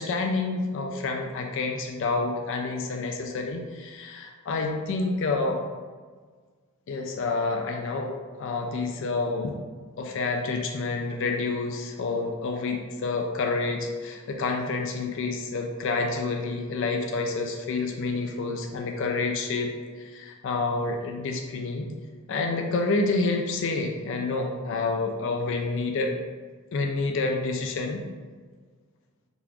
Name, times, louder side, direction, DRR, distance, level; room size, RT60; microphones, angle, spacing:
voice 1, 0.0-5.6 6.9-8.1 8.4-9.6 10.0-19.7 20.0-21.9 22.3-26.2 26.7-28.0, left 3 dB, 55° left, 3 dB, 0.4 m, -28 dB
3.8 x 2.4 x 2.9 m, 1.5 s
head